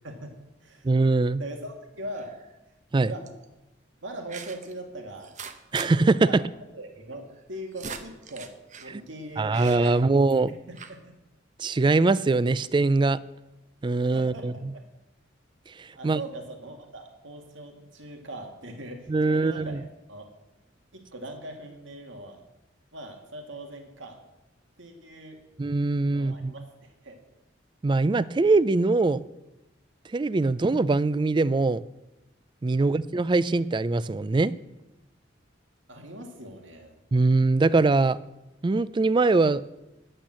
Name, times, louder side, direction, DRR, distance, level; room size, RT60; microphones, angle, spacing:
voice 1, 0.0-0.4 0.6-0.9 1.4-2.3 3.0-3.3 4.0-5.3 6.2-6.4 6.7-8.5 8.8-10.2 10.7-11.2 14.1-14.8 16.0-20.3 20.9-22.4 22.9-24.2 24.8-25.4 26.1-27.2 32.8-33.0 35.9-37.0, right 1 dB, 85° right, 3 dB, 2.1 m, -41 dB
voice 2, 0.8-1.4 2.9-3.1 5.7-6.4 8.9-9.0 9.4-10.6 11.6-13.2 13.8-14.7 16.0-16.2 19.1-19.8 25.6-26.5 27.8-29.3 30.1-31.8 32.6-34.5 37.1-38.2 38.6-39.6, right 3 dB, 25° right, 18 dB, 0.3 m, -22 dB
sound 1, 2.1-2.5 3.3-3.4 4.3-4.7 5.2-5.9 6.2-6.3 6.5-6.6 7.4-8.9 9.5-10.5 10.7-11.0, right 6 dB, 40° right, 0.9 m, -41 dB
10.0 x 8.8 x 7.5 m, 0.99 s
head